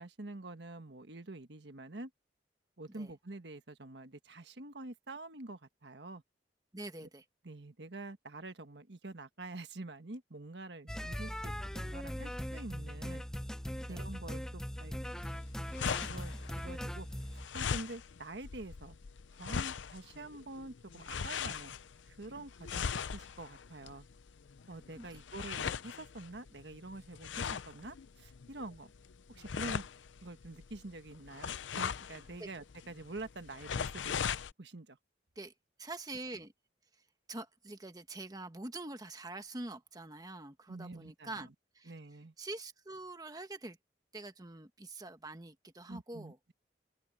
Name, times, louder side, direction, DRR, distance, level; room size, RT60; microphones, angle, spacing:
voice 1, 0.0-2.1 2.8-6.2 7.0-7.1 7.4-13.2 13.9-14.9 16.0-17.1 17.5-19.0 19.4-21.8 22.1-24.1 24.7-28.9 29.3-29.9 30.2-34.2 34.6-35.0 40.7-41.5 41.9-42.3 45.9-46.5, right 2 dB, 65° right, 1.5 m, -47 dB
voice 2, 6.7-7.2 10.9-11.0 13.8-14.0 25.0-25.1 32.4-32.5 35.3-35.5 35.8-36.5 37.3-41.5 41.7-41.9 42.4-43.8 44.1-46.4, right 2 dB, 20° right, 1.3 m, -45 dB
sound 1, 10.9-17.5, equal, 5° left, 0.7 m, -40 dB
sound 2, 15.2-34.5, left 7 dB, 85° left, 0.6 m, -40 dB
head